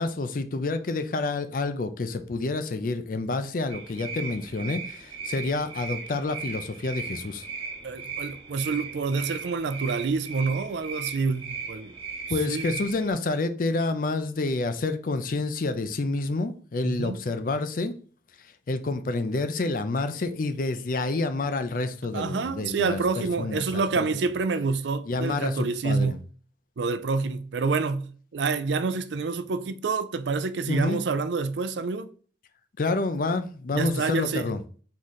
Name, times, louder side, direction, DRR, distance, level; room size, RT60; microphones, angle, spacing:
voice 1, 0.0-7.5 12.3-18.0 18.7-23.8 25.1-26.2 30.6-31.0 32.8-34.6, left 3 dB, 50° left, 0.5 m, -28 dB
sound 1, 3.7-13.1, right 5 dB, 30° right, 1.1 m, -37 dB
voice 2, 7.8-11.9 12.5-12.8 16.8-17.2 22.1-26.2 26.8-32.1 33.7-34.5, right 4 dB, 80° right, 0.4 m, -27 dB
3.9 x 3.1 x 4.0 m
head